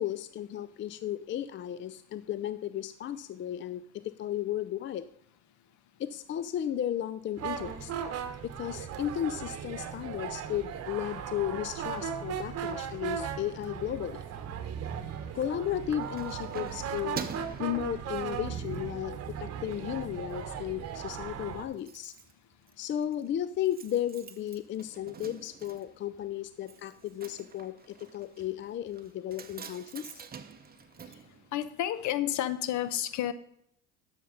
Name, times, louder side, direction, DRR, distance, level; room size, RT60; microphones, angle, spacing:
voice 1, 0.0-5.1 6.0-7.9 8.4-14.2 15.3-17.3 17.6-22.1 22.8-30.2, left 11 dB, 35° left, 13 dB, 0.5 m, -34 dB
sound 1, 7.4-21.6, right 8 dB, 45° right, 1.2 m, -37 dB
Keys jangling, 15.6-18.6 19.1-19.3 19.7-20.4 20.6-20.7 21.0-21.1 21.3-32.1 32.4-32.5, right 6 dB, 25° right, 0.9 m, -47 dB
voice 2, 31.5-33.3, left 12 dB, 55° left, 13 dB, 0.9 m, -30 dB
11.5 x 6.7 x 3.9 m, 0.71 s
hypercardioid pair, 75°, 35 cm